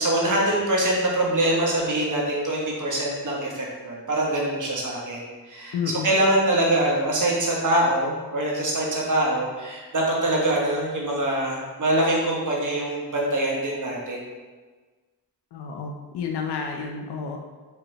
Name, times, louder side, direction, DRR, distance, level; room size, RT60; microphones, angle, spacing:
voice 1, 0.0-5.8 6.0-14.3, right 1 dB, 50° right, -3 dB, 1.3 m, -24 dB
voice 2, 5.7-6.1 15.5-17.4, left 6 dB, 80° left, 2 dB, 0.6 m, -30 dB
4.5 x 3.3 x 3.3 m, 1.3 s
cardioid pair, 70°, 40 cm